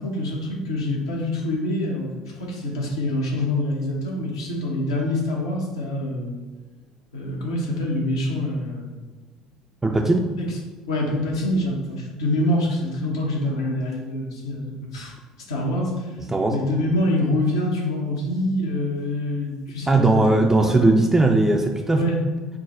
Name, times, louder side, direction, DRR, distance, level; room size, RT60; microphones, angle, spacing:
voice 1, 0.0-6.4 7.1-8.9 10.4-10.5 10.9-15.1 15.5-16.1 16.5-20.2 20.5-20.9 21.9-22.2, left 1 dB, 80° left, -1 dB, 0.7 m, -25 dB
voice 2, 9.8-10.3 16.3-16.6 19.9-22.1, right 2 dB, 15° right, 2 dB, 0.3 m, -18 dB
4.7 x 2.0 x 3.8 m, 1.3 s
figure-of-eight pair, 60°, 3 cm